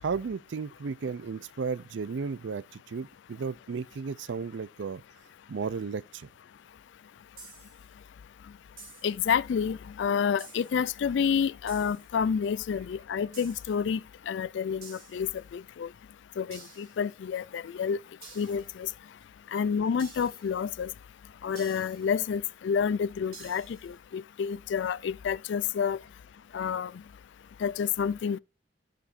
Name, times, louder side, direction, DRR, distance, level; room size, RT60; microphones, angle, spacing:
voice 1, 0.0-5.0 5.5-6.3, right 5 dB, 75° right, 0.4 m, -34 dB
HH Open, 7.4-7.9 8.8-9.3 10.4-10.9 11.7-12.1 13.3-13.9 14.8-15.4 16.5-17.0 18.2-18.7 20.0-20.5 21.5-22.1 23.3-23.9, right 4 dB, 50° right, 4.3 m, -50 dB
voice 2, 9.0-14.0 14.3-15.9 16.4-18.0 18.4-18.9 19.5-20.9 21.4-26.0 26.5-26.9 27.6-28.4, left 7 dB, 75° left, 0.3 m, -29 dB
14.5 x 5.2 x 2.6 m
head